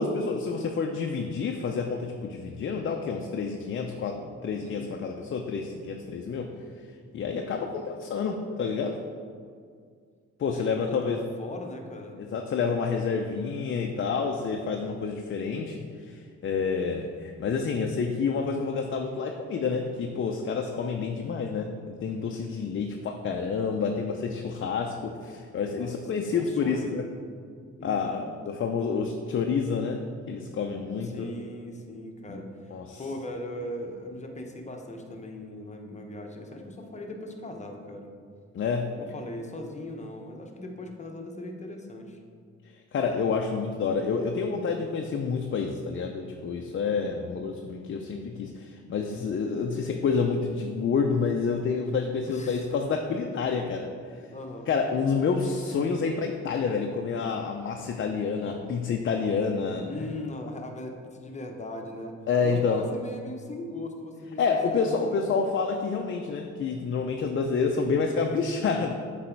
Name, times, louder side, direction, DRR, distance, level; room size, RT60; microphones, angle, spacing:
voice 1, 0.0-6.5 7.1-9.0 10.4-11.2 12.2-27.1 27.8-31.1 32.3-32.4 32.7-33.0 38.5-38.9 42.9-53.9 54.7-59.9 62.3-62.8 64.4-68.9, left 5 dB, 40° left, 3 dB, 0.5 m, -28 dB
voice 2, 4.6-5.0 10.5-12.2 25.7-27.0 27.8-28.3 31.0-38.1 39.0-42.2 46.8-47.2 52.3-52.7 54.3-54.7 59.8-65.3, left 1 dB, 25° left, 2 dB, 0.9 m, -39 dB
7.4 x 4.1 x 4.5 m, 2.1 s
cardioid pair, 90°, 30 cm